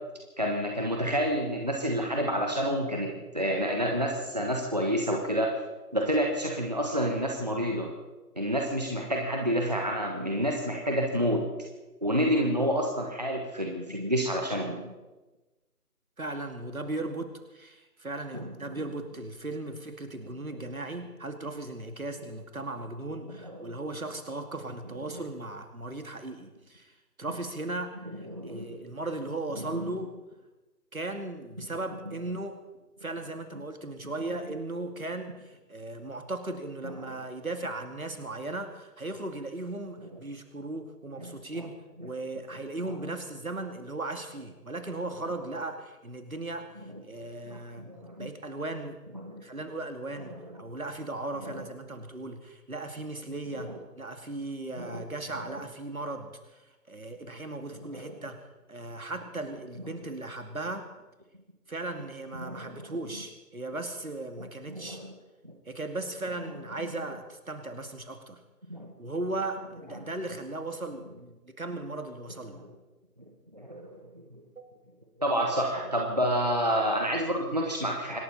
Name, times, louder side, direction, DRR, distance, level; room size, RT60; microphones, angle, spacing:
voice 1, 0.4-5.5 5.9-7.9 8.4-11.5 12.0-14.8 18.3-18.8 23.4-23.6 28.3-28.8 29.6-29.8 37.0-37.1 47.4-48.3 49.2-49.4 51.4-51.6 53.6-53.7 54.8-55.0 57.9-58.1 62.4-62.7 64.7-65.1 68.7-68.9 73.5-74.0 74.3-74.4 75.2-78.2, equal, 25° right, 1 dB, 1.4 m, -29 dB
voice 2, 16.2-30.1 30.9-32.6 33.0-46.8 47.0-47.9 48.2-49.0 49.4-58.4 58.7-60.9 61.7-65.0 65.7-68.4 69.0-72.6, right 2 dB, 60° right, 6 dB, 2.5 m, -37 dB
26.5 x 12.5 x 4.2 m, 1.1 s
figure-of-eight pair, 170°, 48 cm